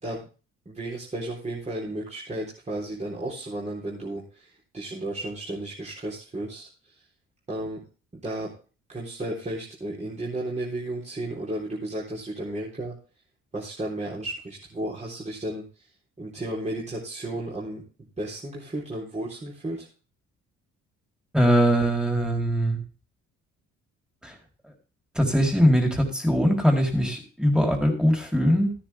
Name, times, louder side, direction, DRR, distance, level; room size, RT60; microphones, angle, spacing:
voice 1, 0.7-7.0 7.5-7.8 8.2-8.5 8.9-12.9 13.5-15.8 16.2-17.8 18.2-19.9, right 1 dB, 20° right, -5 dB, 4.0 m, -33 dB
voice 2, 21.3-22.8 24.2-24.3 25.2-28.7, equal, 5° right, 2 dB, 4.0 m, -21 dB
13.5 x 9.9 x 3.6 m, 0.35 s
cardioid pair, 90°, 30 cm